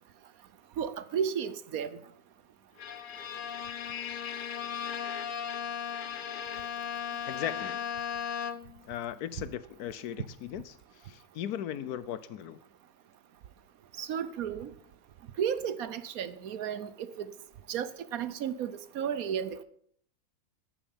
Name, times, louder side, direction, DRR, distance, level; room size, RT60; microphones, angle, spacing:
voice 1, 0.8-1.9 14.0-14.7 15.4-17.3 17.7-19.6, right 8 dB, 65° right, 15 dB, 1.1 m, -33 dB
Bowed string instrument, 2.8-8.9, left 8 dB, 55° left, 0.5 m, -36 dB
voice 2, 7.3-7.9 8.9-12.6, left 10 dB, 70° left, 15 dB, 1.2 m, -38 dB
10.5 x 9.7 x 7.2 m, 0.67 s
omnidirectional pair, 1.7 m